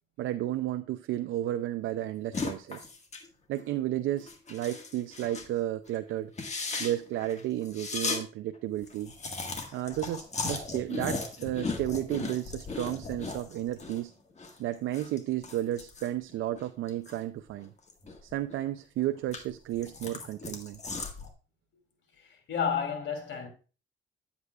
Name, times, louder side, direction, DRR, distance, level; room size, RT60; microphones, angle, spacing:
voice 1, 0.2-2.9 3.5-6.3 6.8-9.1 9.7-14.1 14.6-17.7 18.2-20.8, right 13 dB, 85° right, 0.5 m, -32 dB
sound 1, 2.3-3.3 3.6-3.7 4.2-5.5 5.9-6.0 6.3-8.2 8.5-8.6 8.8-14.0 14.3-17.2 17.6-18.6 19.0-21.3, left 3 dB, 35° left, 1.6 m, -37 dB
voice 2, 22.2-23.5, left 7 dB, 65° left, 2.8 m, -31 dB
9.5 x 8.1 x 2.3 m
cardioid pair, 90°, 20 cm